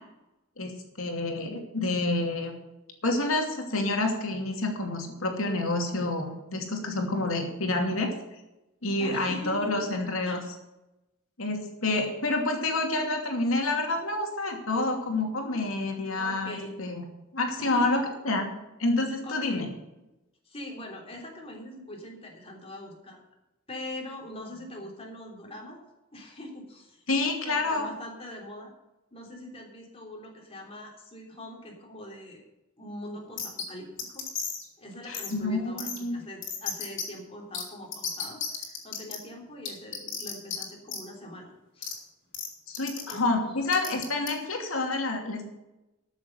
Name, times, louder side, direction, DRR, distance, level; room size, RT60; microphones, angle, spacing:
voice 1, 0.6-2.6 3.0-8.1 8.8-10.4 11.4-17.0 17.3-18.4 18.8-19.7 27.1-27.9 35.1-36.2 42.7-45.4, left 2 dB, 80° left, 2 dB, 2.7 m, -28 dB
voice 2, 9.0-9.9 10.2-10.4 16.2-16.8 17.6-18.0 19.1-19.7 20.4-23.2 23.7-25.8 26.1-27.0 27.4-28.7 29.1-32.4 32.8-34.3 34.8-41.9 43.1-43.6, left 1 dB, 30° left, 0 dB, 3.3 m, -42 dB
sound 1, 33.4-33.6 34.0-34.6 35.1-35.3 35.8-36.0 36.4-37.0 37.5-37.6 37.9-39.2 39.6-40.6 40.9-41.0 41.8-41.9 42.3-42.5 42.7-43.1 43.7-44.3, left 7 dB, 60° left, 3.4 m, -33 dB
13.5 x 7.1 x 6.7 m, 0.97 s
head